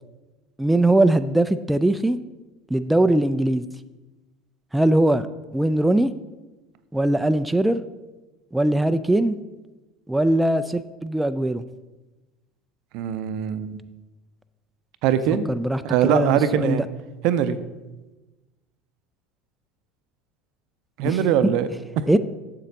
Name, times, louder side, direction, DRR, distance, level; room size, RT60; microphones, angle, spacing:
voice 1, 0.6-2.2 2.7-3.6 4.7-5.3 5.5-6.1 6.9-7.8 8.5-9.4 10.1-11.6 15.5-16.9 21.0-21.2 22.1-22.2, right 1 dB, 5° right, 10 dB, 0.3 m, -20 dB
voice 2, 12.9-13.8 15.0-15.5 15.8-16.9 17.2-17.6 21.0-21.7, right 9 dB, 55° right, 12 dB, 0.5 m, -22 dB
7.6 x 7.3 x 4.0 m, 1.1 s
figure-of-eight pair, 70°, 0 cm